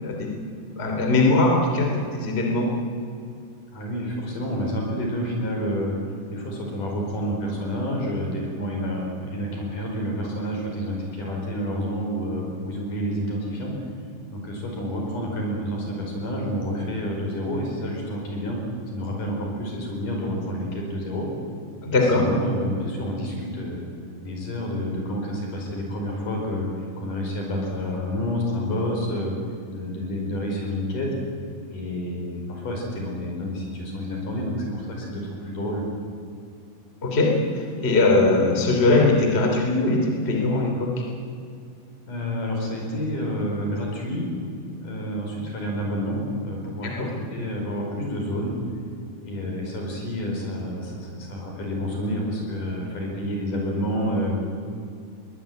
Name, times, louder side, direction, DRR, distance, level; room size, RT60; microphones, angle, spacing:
voice 1, 0.0-0.3 0.8-2.7 21.8-22.2 37.0-41.0 46.8-47.1, left 2 dB, 20° left, 1 dB, 3.2 m, -21 dB
voice 2, 3.7-13.8 14.3-18.6 18.9-21.3 21.9-23.8 24.2-26.7 27.0-29.4 29.7-31.1 31.7-35.8 42.1-44.3 44.8-48.6 49.2-54.4, equal, 65° left, 0 dB, 6.5 m, -29 dB
22.0 x 19.5 x 9.4 m, 2.4 s
omnidirectional pair, 4.0 m